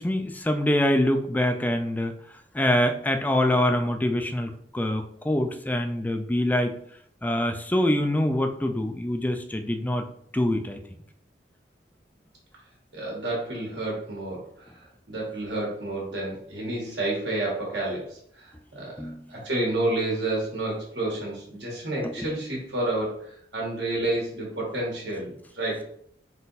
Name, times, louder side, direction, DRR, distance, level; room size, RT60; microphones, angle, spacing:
voice 1, 0.0-2.1 2.5-6.8 7.2-10.1 10.3-10.8 19.0-19.3 22.0-22.3, left 1 dB, 10° left, 5 dB, 0.3 m, -25 dB
voice 2, 12.9-14.7 15.1-18.9 19.3-25.8, right 2 dB, 75° right, -3 dB, 1.7 m, -30 dB
3.9 x 2.6 x 4.0 m, 0.67 s
head